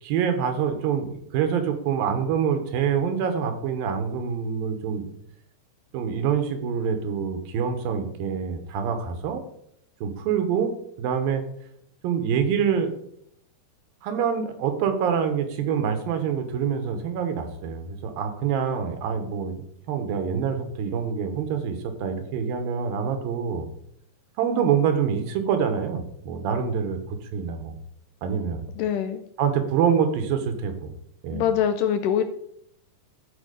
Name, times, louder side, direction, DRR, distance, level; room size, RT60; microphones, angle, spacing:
voice 1, 0.0-5.1 5.9-9.4 10.0-10.7 11.0-11.4 12.0-12.9 14.0-19.6 19.9-23.7 24.4-27.0 27.3-27.8 28.2-28.6 29.4-30.9 31.2-31.4, right 7 dB, 80° right, 7 dB, 2.8 m, -26 dB
voice 2, 28.8-29.2 31.3-32.2, left 9 dB, 80° left, 8 dB, 2.0 m, -23 dB
13.0 x 4.8 x 5.1 m, 0.72 s
omnidirectional pair, 4.2 m